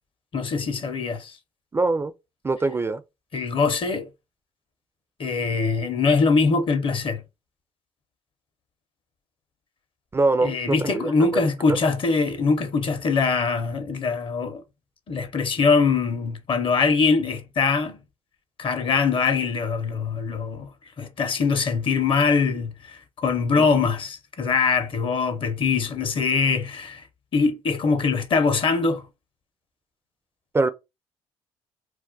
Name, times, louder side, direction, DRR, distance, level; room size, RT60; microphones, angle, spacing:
voice 1, 0.3-1.3 3.3-4.1 5.2-7.2 10.4-14.6 15.1-18.0 18.6-20.7 21.0-27.0 27.3-29.0, left 4 dB, 45° left, 0.7 m, -23 dB
voice 2, 1.7-2.1 2.4-3.0 10.1-11.4 23.6-23.7 30.5-30.7, right 3 dB, 20° right, 0.3 m, -23 dB
2.4 x 2.2 x 3.8 m
supercardioid pair, 60°, 12 cm